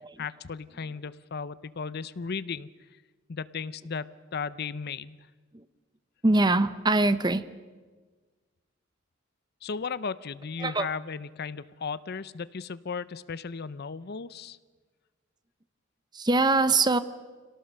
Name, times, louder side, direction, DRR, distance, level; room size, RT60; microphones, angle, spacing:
voice 1, 0.2-2.7 3.3-5.2 9.6-14.6, left 5 dB, 50° left, 17 dB, 0.6 m, -35 dB
voice 2, 6.2-7.4 10.6-10.9 16.1-17.0, right 2 dB, 20° right, 14 dB, 0.7 m, -23 dB
26.0 x 18.0 x 6.6 m, 1.4 s
head